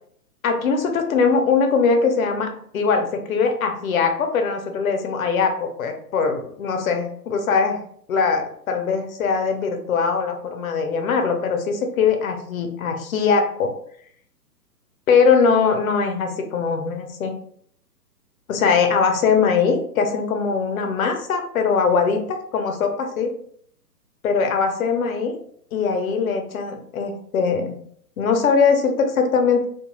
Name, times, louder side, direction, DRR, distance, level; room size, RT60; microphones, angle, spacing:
voice 1, 0.4-7.8 8.1-13.7 15.1-17.3 18.5-23.3 24.2-25.3 25.7-27.8 28.2-29.6, left 5 dB, 60° left, 5 dB, 0.6 m, -21 dB
2.3 x 2.3 x 3.0 m, 0.62 s
hypercardioid pair, 150°, 49 cm